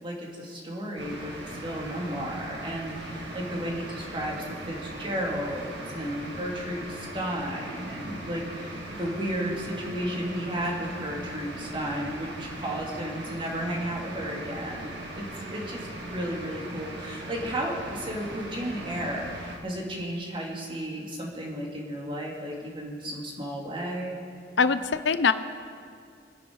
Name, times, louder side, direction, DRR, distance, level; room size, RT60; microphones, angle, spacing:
voice 1, 0.0-24.2, equal, 30° right, -2 dB, 2.7 m, -33 dB
sound 1, 1.0-19.6, right 1 dB, 75° right, 2.2 m, -39 dB
voice 2, 24.6-25.3, left 5 dB, 80° left, 12 dB, 0.7 m, -22 dB
25.5 x 10.5 x 4.8 m, 2.2 s
head